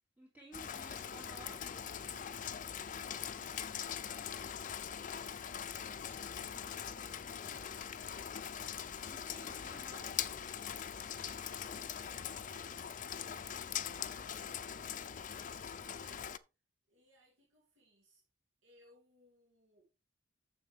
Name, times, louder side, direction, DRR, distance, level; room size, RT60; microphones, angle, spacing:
voice 1, 0.2-1.6 9.1-10.1, right 1 dB, 10° right, 2.7 m, -54 dB
Rain, 0.5-16.4, left 8 dB, 45° left, 0.5 m, -42 dB
voice 2, 1.2-2.4 2.9-8.5 11.1-11.9 12.2-12.8 13.1-16.4 16.9-18.2 18.6-19.9, right 1 dB, 80° right, 2.8 m, -67 dB
9.5 x 7.2 x 3.5 m
head